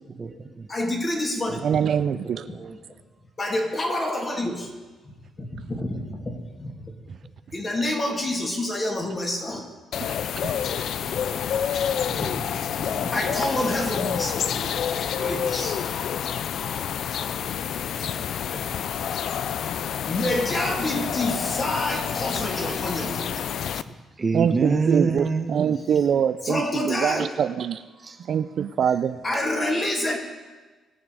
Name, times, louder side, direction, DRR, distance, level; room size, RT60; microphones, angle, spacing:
voice 1, 0.0-0.7 1.5-2.8 5.3-5.4 18.1-18.2 20.1-20.2 22.2-25.9 27.1-27.3 28.0-28.6, right 4 dB, 30° right, 6 dB, 1.1 m, -30 dB
voice 2, 0.7-1.6 3.4-4.7 5.4-6.9 7.5-9.6 12.2-12.3 12.8-14.7 15.2-15.8 16.5-16.6 18.0-18.1 18.5-18.6 20.0-23.3 26.4-27.3 29.2-30.2, left 1 dB, 30° left, 0 dB, 2.8 m, -28 dB
voice 3, 1.6-2.4 7.1-7.2 10.4-10.6 24.3-25.2 25.5-27.8 28.2-29.2, right 8 dB, 60° right, 12 dB, 0.5 m, -24 dB
sound 1, 9.9-23.8, left 8 dB, 70° left, 0.4 m, -28 dB
21.0 x 7.4 x 4.9 m, 1.3 s
cardioid pair, 90°, 0 cm